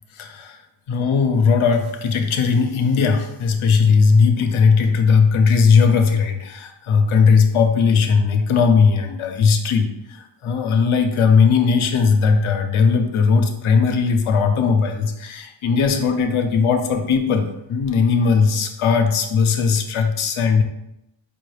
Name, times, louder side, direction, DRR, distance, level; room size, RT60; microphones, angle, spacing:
voice 1, 0.1-0.6 0.9-20.6, left 5 dB, 80° left, 6 dB, 0.6 m, -18 dB
5.0 x 2.3 x 3.2 m, 0.85 s
wide cardioid pair, 105°, 48 cm